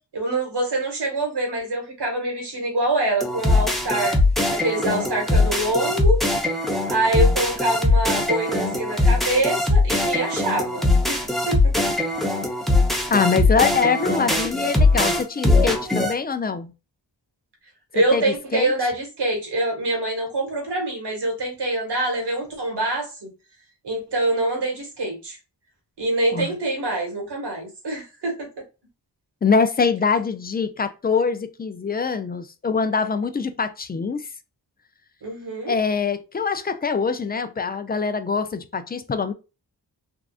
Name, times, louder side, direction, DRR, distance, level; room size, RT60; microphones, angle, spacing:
voice 1, 0.1-4.2 4.5-6.2 6.9-11.7 17.9-23.3 23.8-25.4 26.0-28.5 35.2-35.8, right 2 dB, 70° right, 1.5 m, -25 dB
sound 1, 3.2-16.1, left 2 dB, ahead, 0.7 m, -21 dB
voice 2, 13.1-16.7 18.1-18.7 26.3-26.6 29.4-34.3 35.7-39.3, left 5 dB, 25° left, 0.3 m, -24 dB
3.6 x 2.4 x 2.4 m
wide cardioid pair, 75°, 42 cm